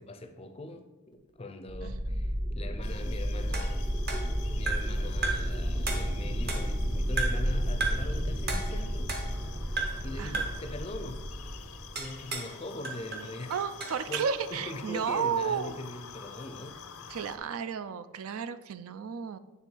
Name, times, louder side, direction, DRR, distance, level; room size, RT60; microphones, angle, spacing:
voice 1, 0.0-3.9 4.6-9.1 10.0-11.3 11.9-13.5 14.1-14.3 14.7-16.8, left 2 dB, 25° left, 7 dB, 0.5 m, -41 dB
sound 1, 1.7-12.3, equal, 20° right, 0.6 m, -32 dB
voice 2, 1.8-2.2 10.2-10.5 13.5-15.8 17.1-19.4, right 7 dB, 70° right, 13 dB, 0.4 m, -33 dB
sound 2, 2.8-17.4, left 6 dB, 85° left, 0.6 m, -48 dB
sound 3, 3.5-5.0 5.2-5.6 5.9-6.8 7.2-7.5 7.8-8.1 8.5-9.5 9.8-10.1 10.3-10.7 12.0-12.6 12.8-14.3, right 3 dB, 45° right, 1.0 m, -35 dB
8.9 x 3.4 x 4.5 m, 1.2 s
head